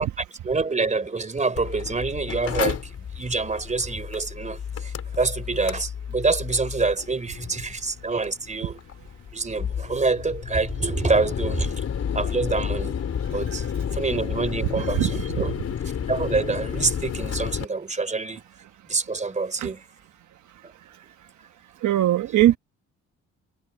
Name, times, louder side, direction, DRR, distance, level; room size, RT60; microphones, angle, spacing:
voice 1, 0.0-8.8 9.3-11.8 12.1-13.0 13.3-13.7 13.9-15.5 16.1-18.4 18.9-19.8, right 3 dB, 25° right, 3.6 m, -26 dB
Mechanical fan, 1.6-17.6, left 8 dB, 55° left, 4.0 m, -31 dB
voice 2, 21.8-22.6, right 13 dB, 75° right, 1.4 m, -20 dB
cardioid pair, 90°, 30 cm